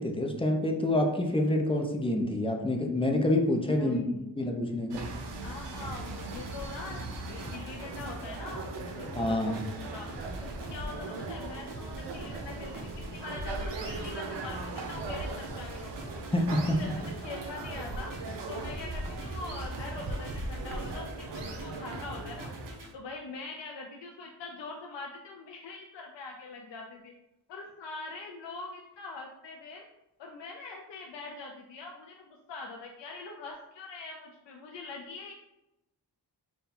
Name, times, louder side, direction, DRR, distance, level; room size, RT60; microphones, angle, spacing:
voice 1, 0.0-4.0 4.4-5.0 9.2-9.6 16.3-16.8, left 1 dB, 15° left, 2 dB, 0.5 m, -27 dB
voice 2, 3.8-4.3 5.4-10.1 10.4-16.2 16.6-18.1 18.5-22.6 22.9-27.1 27.5-29.8 30.2-35.3, left 3 dB, 90° left, 0 dB, 0.6 m, -43 dB
sound 1, 4.9-22.7, right 2 dB, 85° right, 0.7 m, -39 dB
sound 2, 5.8-22.9, right 2 dB, 50° right, 0.8 m, -44 dB
3.8 x 2.3 x 4.1 m, 0.90 s
wide cardioid pair, 90°, 42 cm